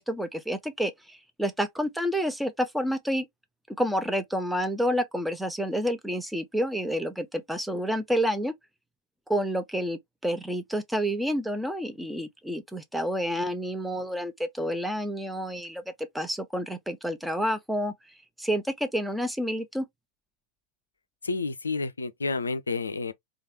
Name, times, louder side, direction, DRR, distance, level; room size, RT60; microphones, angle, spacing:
voice 1, 0.0-3.3 3.8-8.5 9.3-15.8 16.1-17.9 18.4-19.9, equal, ahead, 0.5 m, -29 dB
voice 2, 21.2-23.1, left 3 dB, 75° left, 0.3 m, -30 dB
3.1 x 2.3 x 2.6 m
figure-of-eight pair, 90°, 0 cm